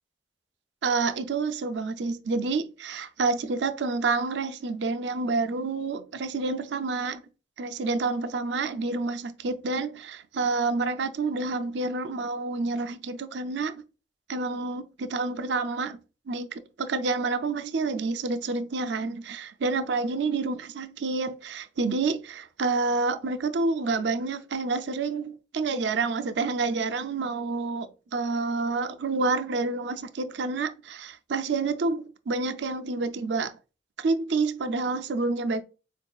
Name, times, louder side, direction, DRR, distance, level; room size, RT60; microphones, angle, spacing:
voice 1, 0.8-7.2 7.6-13.8 14.3-16.0 16.3-33.5 34.0-35.6, right 3 dB, 70° right, 0.5 m, -28 dB
4.5 x 2.7 x 2.3 m
head